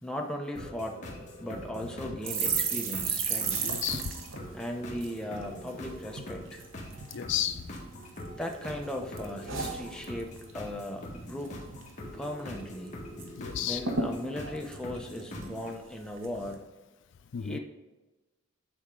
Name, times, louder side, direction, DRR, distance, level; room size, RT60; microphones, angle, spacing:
voice 1, 0.0-1.0 1.4-3.7 4.5-6.6 8.4-11.6 12.1-12.9 13.6-16.6 17.4-17.6, left 1 dB, 5° left, 1 dB, 0.7 m, -37 dB
sound 1, 0.6-15.7, left 1 dB, 35° left, 1.7 m, -44 dB
sound 2, 2.2-5.8 6.1-6.3 6.6-7.2 7.7-8.5 8.8-10.5 10.8-11.0 11.3-11.9 12.2-12.3 12.6-13.3 13.5-13.6 13.8-15.7 16.2-16.5, right 5 dB, 70° right, 0.9 m, -34 dB
voice 2, 3.6-4.1 7.1-7.7 13.4-13.8 17.3-17.6, left 10 dB, 60° left, 10 dB, 0.4 m, -32 dB
9.9 x 4.4 x 3.7 m, 1.1 s
head